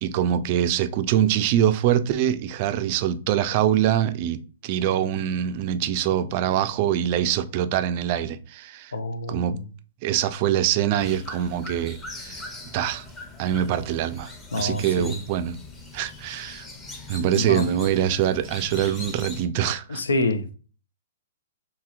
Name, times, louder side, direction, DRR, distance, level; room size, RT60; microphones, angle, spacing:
voice 1, 0.0-8.9 9.3-9.6 10.0-12.4 12.7-13.1 13.4-15.6 15.9-16.7 17.1-20.0, right 10 dB, 45° right, 0.3 m, -24 dB
voice 2, 8.9-9.6 14.5-15.2 17.4-17.6 19.9-20.6, left 2 dB, 90° left, 0.5 m, -27 dB
sound 1, 11.0-19.5, left 2 dB, 15° left, 0.7 m, -41 dB
2.9 x 2.8 x 2.3 m
hypercardioid pair, 130°, 0 cm